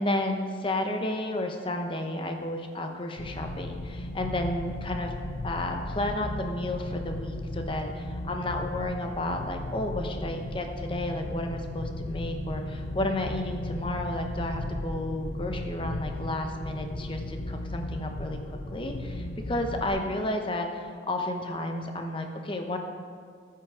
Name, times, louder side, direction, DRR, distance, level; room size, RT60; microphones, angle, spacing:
voice 1, 0.0-5.1 5.4-22.8, left 1 dB, 30° left, 4 dB, 0.9 m, -32 dB
sound 1, 3.2-19.9, left 1 dB, 55° left, 0.7 m, -35 dB
13.5 x 6.0 x 4.9 m, 2.2 s
head